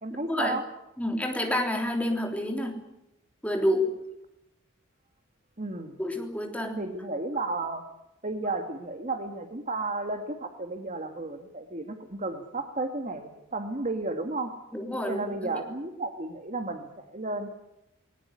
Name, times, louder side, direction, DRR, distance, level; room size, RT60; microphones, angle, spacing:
voice 1, 0.0-0.6 5.6-6.0 6.8-7.8 8.2-14.5 15.1-17.5, right 2 dB, 35° right, 6 dB, 1.8 m, -33 dB
voice 2, 1.0-2.7 3.4-3.9 6.0-6.8 14.7-15.5, left 1 dB, 5° left, 3 dB, 3.4 m, -28 dB
20.0 x 18.5 x 9.6 m, 0.90 s
head